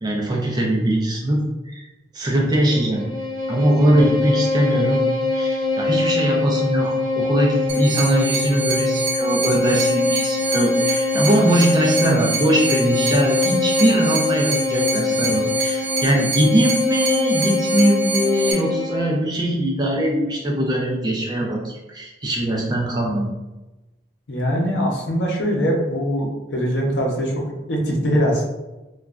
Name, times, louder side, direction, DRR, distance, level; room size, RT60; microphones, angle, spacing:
voice 1, 0.0-1.8 2.1-3.1 3.5-5.0 5.3-23.3, right 1 dB, 20° right, -2 dB, 0.5 m, -21 dB
Bowed string instrument, 2.6-19.2, left 3 dB, 20° left, 1.2 m, -23 dB
sound 1, 7.7-18.5, right 4 dB, 90° right, 0.6 m, -27 dB
voice 2, 24.3-27.4 27.7-28.4, equal, 70° left, -2 dB, 0.7 m, -22 dB
3.0 x 2.3 x 2.4 m, 1.0 s
head